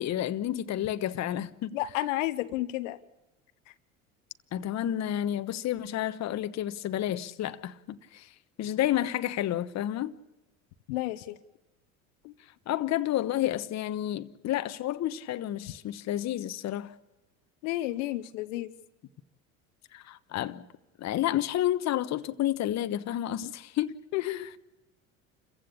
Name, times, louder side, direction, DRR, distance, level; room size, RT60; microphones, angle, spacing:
voice 1, 0.0-1.8 4.5-8.3 8.6-10.1 12.7-16.9 19.9-20.6 21.0-24.5, left 12 dB, 40° left, 1.1 m, -30 dB
voice 2, 1.7-3.0 10.9-11.4 17.6-18.7 24.1-24.5, left 16 dB, 70° left, 1.1 m, -31 dB
28.0 x 15.5 x 8.5 m
hypercardioid pair, 75°, 40 cm